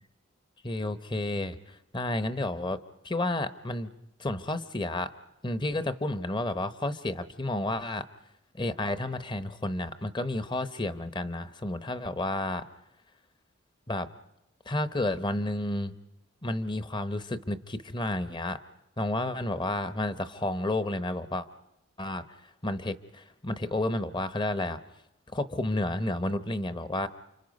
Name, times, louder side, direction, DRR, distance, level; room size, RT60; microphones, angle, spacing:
voice 1, 0.6-3.9 4.2-5.1 5.4-8.1 8.5-12.6 13.9-14.1 14.7-16.0 16.4-18.6 19.0-21.5 22.0-22.2 22.6-24.8 25.3-27.1, left 1 dB, 20° left, 12 dB, 0.8 m, -31 dB
29.0 x 26.0 x 5.3 m, 0.87 s
head